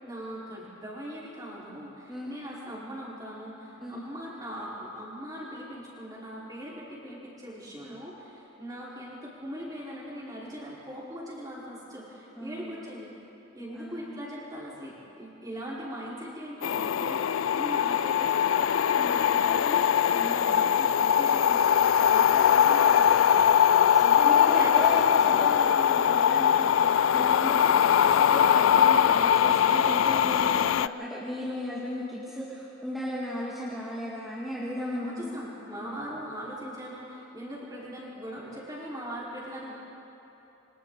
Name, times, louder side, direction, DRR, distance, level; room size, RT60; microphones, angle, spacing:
voice 1, 0.0-13.1 13.5-25.4 35.0-39.7, equal, 20° right, -7 dB, 5.2 m, -40 dB
voice 2, 12.4-12.8 13.7-14.1 19.0-19.2 20.1-20.3 23.9-35.4 35.8-36.0, equal, ahead, -8 dB, 2.2 m, -36 dB
sound 1, 16.6-30.9, left 9 dB, 90° left, 0.4 m, -22 dB
27.5 x 25.0 x 4.2 m, 3.0 s
head